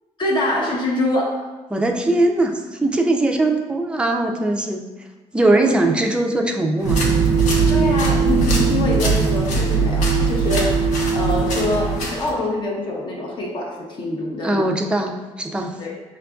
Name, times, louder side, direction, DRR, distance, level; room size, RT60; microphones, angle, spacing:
voice 1, 0.2-1.5 7.7-14.7 15.8-16.0, left 1 dB, 40° left, -2 dB, 0.6 m, -24 dB
voice 2, 1.7-4.8 5.3-7.0 14.4-15.7, right 2 dB, 10° right, 2 dB, 0.3 m, -20 dB
sound 1, 6.8-12.3, left 2 dB, 75° left, 0.8 m, -30 dB
sound 2, 6.8-12.1, right 5 dB, 80° right, 0.4 m, -19 dB
5.6 x 2.4 x 2.3 m, 1.2 s
cardioid pair, 130°, 13 cm